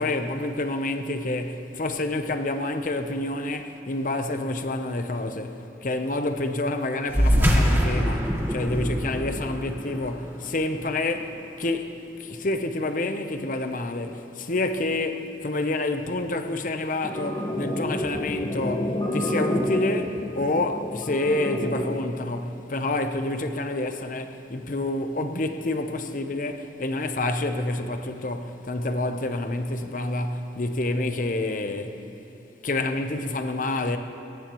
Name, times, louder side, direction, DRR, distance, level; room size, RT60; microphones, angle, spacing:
voice 1, 0.0-32.0 32.6-34.0, left 2 dB, 45° left, 0.8 m, -28 dB
sound 1, 7.1-12.0, equal, 10° right, 1.3 m, -24 dB
sound 2, 17.0-22.0, left 1 dB, 30° left, 1.6 m, -29 dB
21.0 x 18.0 x 3.1 m
head